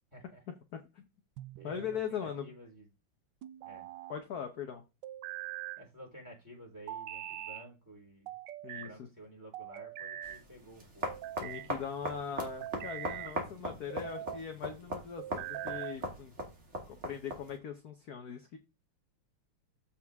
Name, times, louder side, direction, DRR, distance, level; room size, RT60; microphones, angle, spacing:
voice 1, 0.1-0.4 1.6-2.9 3.6-3.9 5.8-8.4 8.7-11.1, equal, 10° right, 4.0 m, -52 dB
voice 2, 0.7-1.1 1.6-2.5 4.1-4.8 8.6-8.9 11.4-16.3 16.9-18.6, left 7 dB, 50° left, 1.3 m, -40 dB
sound 1, 1.4-2.0 3.4-4.2 5.0-5.8 6.9-7.7 8.3-8.9 9.5-10.4 11.0-11.7 12.4-13.4 13.9-14.4 15.2-16.0, right 13 dB, 70° right, 1.1 m, -42 dB
sound 2, 10.2-17.6, right 1 dB, 30° right, 2.4 m, -40 dB
14.0 x 4.7 x 3.6 m
omnidirectional pair, 2.4 m